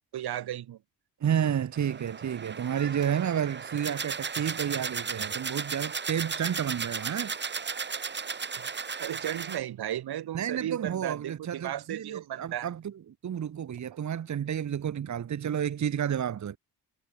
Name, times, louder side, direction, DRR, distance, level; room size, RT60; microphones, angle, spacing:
voice 1, 0.1-0.8 8.6-8.7 9.0-12.7, right 12 dB, 75° right, 3.0 m, -35 dB
voice 2, 1.2-7.3 10.3-12.9 13.2-16.6, right 9 dB, 45° right, 1.6 m, -31 dB
sound 1, 1.7-9.6, right 5 dB, 30° right, 1.9 m, -35 dB
cardioid pair, 140°, 38 cm